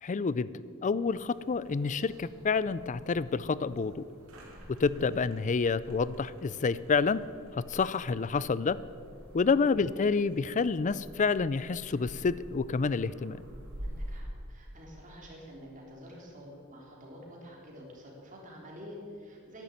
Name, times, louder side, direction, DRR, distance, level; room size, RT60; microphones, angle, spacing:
voice 1, 0.0-4.0 4.8-7.2 7.7-8.8 9.3-13.4, left 4 dB, 35° left, 17 dB, 0.4 m, -28 dB
sound 1, 1.1-14.2, equal, 75° right, 3.5 m, -48 dB
voice 2, 13.8-19.6, equal, 35° right, -2 dB, 3.5 m, -48 dB
11.0 x 10.5 x 9.0 m, 2.3 s
head